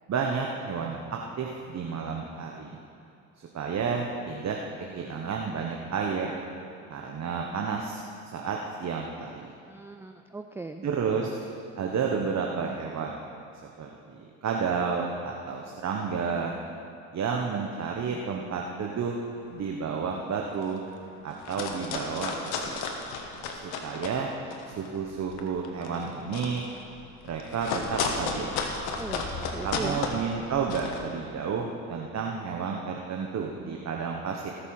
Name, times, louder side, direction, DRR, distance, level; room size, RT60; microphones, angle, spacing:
voice 1, 0.1-2.8 3.4-6.3 6.9-8.0 8.3-9.5 10.8-11.4 11.8-13.4 13.8-16.5 17.1-19.2 19.5-20.8 21.2-22.8 23.5-24.3 24.6-26.6 27.2-28.5 29.6-34.5, right 5 dB, 45° right, 0 dB, 1.2 m, -31 dB
voice 2, 9.7-10.9 29.0-30.0, right 3 dB, 5° right, 7 dB, 0.4 m, -38 dB
sound 1, 19.5-19.8 20.2-20.9 21.3-24.2 24.5-31.0, left 4 dB, 80° left, 1.4 m, -33 dB
19.5 x 6.7 x 4.8 m, 2.6 s
supercardioid pair, 75°, 38 cm